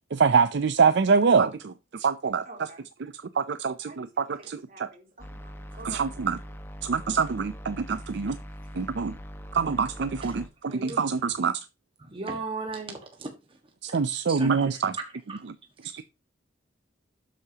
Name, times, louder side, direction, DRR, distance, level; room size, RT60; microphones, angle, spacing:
voice 1, 0.1-2.4 3.0-4.9 5.8-6.4 6.8-8.4 8.7-9.2 9.5-11.7 13.8-15.0, right 5 dB, 65° right, 0.5 m, -25 dB
voice 2, 2.4-2.8 3.9-6.2, right 2 dB, 50° right, 3.3 m, -49 dB
sound 1, 5.2-10.5, equal, 10° left, 1.3 m, -42 dB
voice 3, 10.7-11.0 12.0-13.3 14.3-14.5 15.3-15.4 15.9-16.0, right 3 dB, 30° right, 1.5 m, -36 dB
12.5 x 8.4 x 2.9 m
head